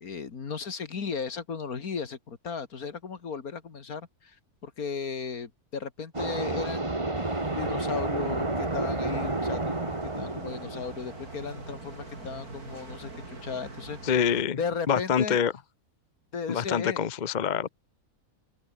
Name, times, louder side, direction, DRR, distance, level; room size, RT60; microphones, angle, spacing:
voice 1, 0.0-4.4 4.6-14.0 14.6-15.4 16.3-17.1, left 5 dB, 75° left, 2.4 m, -36 dB
sound 1, 6.1-11.8, right 2 dB, 20° right, 2.1 m, -31 dB
sound 2, 7.1-14.4, right 2 dB, 85° right, 5.5 m, -44 dB
voice 2, 14.0-14.6 14.9-15.5 16.5-17.7, left 7 dB, 40° left, 0.7 m, -25 dB
open air
omnidirectional pair, 1.6 m